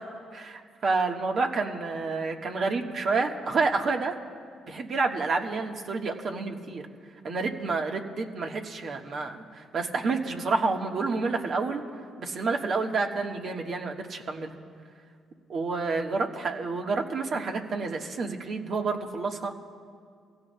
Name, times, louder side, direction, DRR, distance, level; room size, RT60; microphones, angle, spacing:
voice 1, 0.3-4.1 4.7-6.8 7.2-9.4 9.7-11.8 12.2-14.5 15.5-19.6, right 4 dB, 55° right, 3 dB, 1.4 m, -29 dB
23.5 x 16.0 x 2.2 m, 2.2 s
hypercardioid pair, 55°, 0 cm